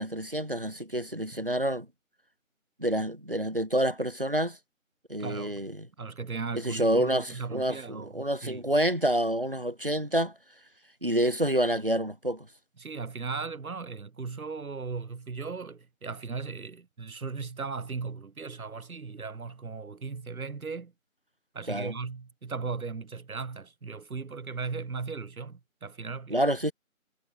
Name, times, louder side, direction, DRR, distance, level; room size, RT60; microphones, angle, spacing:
voice 1, 0.0-1.9 2.8-4.6 5.1-5.9 6.5-10.3 11.0-12.5 21.7-21.9 26.3-26.7, right 1 dB, 40° right, 0.6 m, -28 dB
voice 2, 5.2-5.6 6.0-8.7 12.8-20.9 21.5-26.4, right 4 dB, 85° right, 1.0 m, -37 dB
figure-of-eight pair, 175°, 42 cm